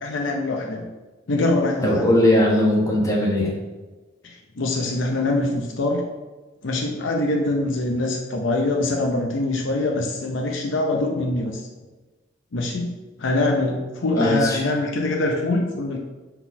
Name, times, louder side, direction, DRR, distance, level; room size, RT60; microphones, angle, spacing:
voice 1, 0.0-0.8 1.3-2.1 4.2-6.0 6.6-11.6 12.5-12.9 13.2-16.0, left 2 dB, 65° left, 1 dB, 0.6 m, -24 dB
voice 2, 1.8-3.5 14.1-14.6, left 1 dB, 15° left, -3 dB, 1.2 m, -19 dB
4.4 x 4.0 x 5.5 m, 1.2 s
head